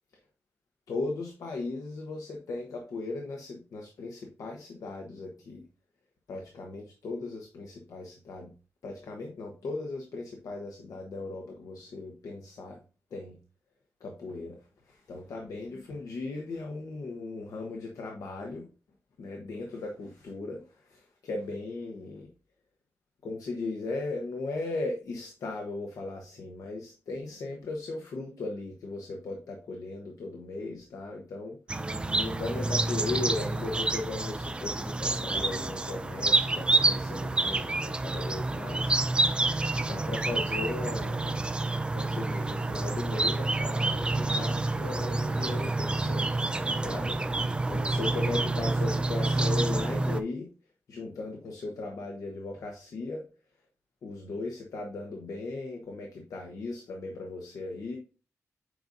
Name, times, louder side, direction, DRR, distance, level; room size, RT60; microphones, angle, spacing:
voice 1, 0.9-5.6 6.3-8.5 8.8-12.8 13.1-13.4 14.0-18.7 19.2-22.3 23.2-31.6 31.8-39.0 39.9-41.6 41.9-46.4 46.7-47.2 47.7-50.5 50.9-53.2 54.0-58.0, left 3 dB, 80° left, 2 dB, 1.0 m, -37 dB
sound 1, 31.7-50.2, right 2 dB, 15° right, 0.4 m, -28 dB
7.8 x 5.2 x 2.6 m, 0.35 s
wide cardioid pair, 160°, 6 cm